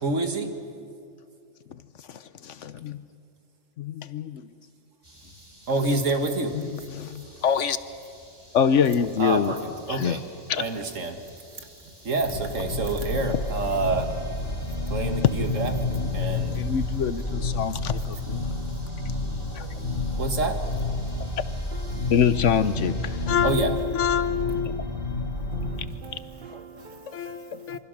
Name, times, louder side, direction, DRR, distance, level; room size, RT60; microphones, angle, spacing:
voice 1, 0.0-0.5 5.7-6.5 9.2-9.6 9.9-10.2 10.6-11.2 12.1-14.1 14.9-15.7 16.1-16.5 20.2-20.5 23.4-23.7, right 3 dB, 70° right, 2.1 m, -27 dB
voice 2, 2.1-3.0 3.8-4.5 6.5-7.8 8.5-9.5 9.9-10.2 10.5-10.6 16.6-18.5 19.5-19.8 22.1-24.8 25.4-25.6 26.8-27.8, left 7 dB, 70° left, 1.1 m, -26 dB
sound 1, 5.0-23.4, equal, 20° right, 4.5 m, -51 dB
sound 2, 12.2-25.9, left 2 dB, 45° left, 2.5 m, -30 dB
voice 3, 21.7-22.1 25.5-27.8, right 6 dB, 45° right, 1.0 m, -44 dB
27.0 x 24.0 x 6.6 m
omnidirectional pair, 1.3 m